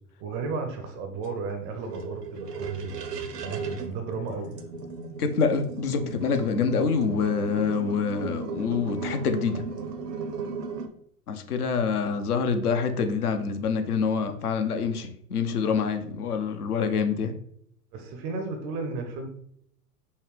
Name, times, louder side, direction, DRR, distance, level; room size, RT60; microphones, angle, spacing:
voice 1, 0.2-2.9 3.4-4.5 17.9-19.3, right 4 dB, 25° right, 5 dB, 0.4 m, -33 dB
sound 1, 1.2-10.9, right 4 dB, 85° right, 0.6 m, -36 dB
voice 2, 5.2-9.6 11.3-17.3, left 5 dB, 70° left, 7 dB, 0.7 m, -26 dB
5.4 x 2.1 x 3.2 m, 0.69 s
figure-of-eight pair, 90°, 47 cm